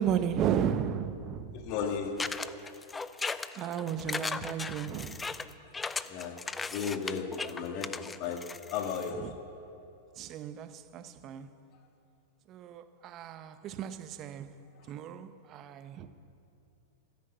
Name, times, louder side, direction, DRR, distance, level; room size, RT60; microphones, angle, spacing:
voice 1, 0.0-1.7 3.5-5.3 9.2-9.3 10.2-11.5 12.5-14.5 14.9-16.1, right 9 dB, 35° right, 0.8 m, -34 dB
voice 2, 1.5-2.4 6.0-9.4 14.7-14.9, left 6 dB, 45° left, 1.9 m, -35 dB
sound 1, 2.2-9.1, left 4 dB, 15° left, 0.5 m, -37 dB
15.0 x 10.5 x 8.0 m
hypercardioid pair, 110°, 0 cm